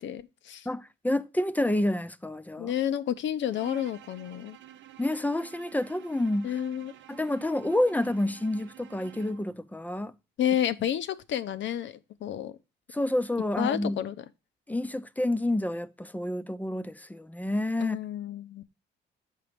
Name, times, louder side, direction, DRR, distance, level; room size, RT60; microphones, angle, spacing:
voice 1, 0.0-0.7 2.6-4.6 6.4-6.9 10.4-12.6 13.6-14.2 17.8-18.6, left 10 dB, 70° left, 0.7 m, -30 dB
voice 2, 0.7-2.7 5.0-6.5 7.1-10.1 12.9-14.0 14.7-18.0, left 1 dB, 10° left, 0.5 m, -29 dB
Bowed string instrument, 3.5-9.5, right 11 dB, 70° right, 0.8 m, -50 dB
7.4 x 4.7 x 5.1 m
cardioid pair, 90°, 20 cm